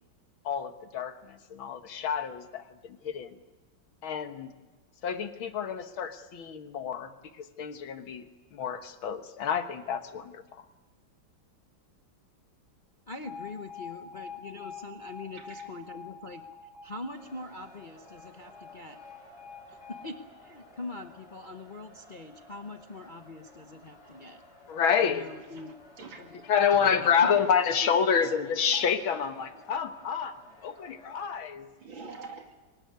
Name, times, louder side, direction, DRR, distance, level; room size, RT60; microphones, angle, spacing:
voice 1, 0.4-3.4 4.0-4.5 5.0-10.6 24.7-25.3 26.5-30.4 30.6-31.7, left 7 dB, 80° left, 8 dB, 2.1 m, -28 dB
voice 2, 13.1-16.4 16.8-19.0 19.7-24.4 25.0-25.7 26.2-26.5 27.0-27.1 27.8-27.9, left 3 dB, 35° left, 5 dB, 0.8 m, -43 dB
Alarm, 13.3-21.3, left 5 dB, 10° right, 4.9 m, -46 dB
voice 3, 15.3-15.7 19.7-19.8 24.0-24.2 25.6-25.7 26.0-26.5 26.7-27.0 27.3-27.5 27.9-28.1 28.7-28.9 31.1-31.2 31.8-32.6, right 4 dB, 70° right, 3 dB, 3.4 m, -46 dB
sound 1, 17.1-31.3, left 1 dB, 55° left, 5.3 m, -56 dB
23.0 x 19.5 x 9.6 m, 1.2 s
omnidirectional pair, 2.2 m